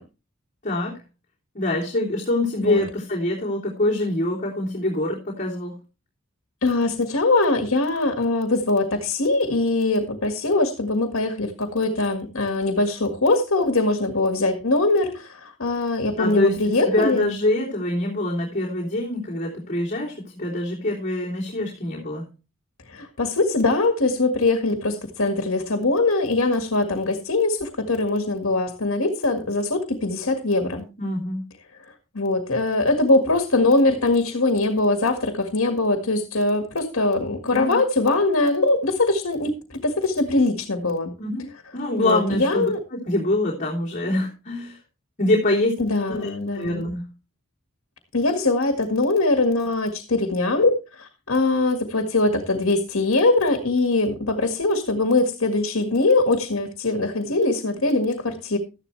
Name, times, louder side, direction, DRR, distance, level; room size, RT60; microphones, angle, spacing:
voice 1, 0.6-0.9 1.5-5.8 16.2-22.3 31.0-31.5 37.4-37.8 41.2-41.5 41.7-44.8 45.2-45.8 46.1-47.1, left 1 dB, 35° left, -4 dB, 3.2 m, -25 dB
voice 2, 6.6-17.3 22.9-30.9 32.1-41.1 42.0-42.8 45.8-46.9 48.1-58.6, left 2 dB, 80° left, 5 dB, 1.8 m, -22 dB
13.5 x 11.0 x 3.2 m, 0.31 s
head